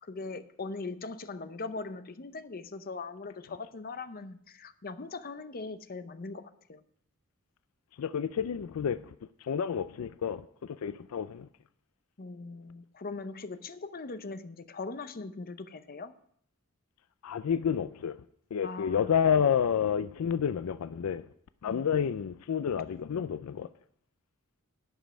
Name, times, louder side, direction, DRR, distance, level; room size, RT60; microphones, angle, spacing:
voice 1, 0.0-6.8 12.2-16.1 18.6-19.1 21.7-21.9, left 3 dB, 45° left, 0.7 m, -40 dB
voice 2, 8.0-9.1 9.4-11.5 17.2-18.2 18.5-21.3 21.6-23.7, left 7 dB, 85° left, 0.4 m, -29 dB
11.5 x 5.3 x 8.8 m
head